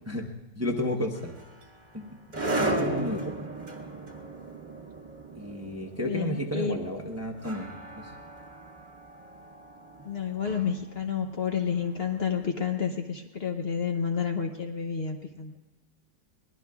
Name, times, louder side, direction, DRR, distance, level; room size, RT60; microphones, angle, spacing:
voice 1, 0.5-1.3 1.9-2.0 2.3-3.3 5.3-8.1, left 1 dB, 15° right, 2 dB, 0.8 m, -32 dB
sound 1, 1.1-12.3, right 2 dB, 30° right, 1.3 m, -36 dB
voice 2, 6.0-6.8 10.0-15.5, left 7 dB, 50° left, 4 dB, 0.9 m, -30 dB
23.0 x 19.5 x 2.4 m, 1.1 s
omnidirectional pair, 1.6 m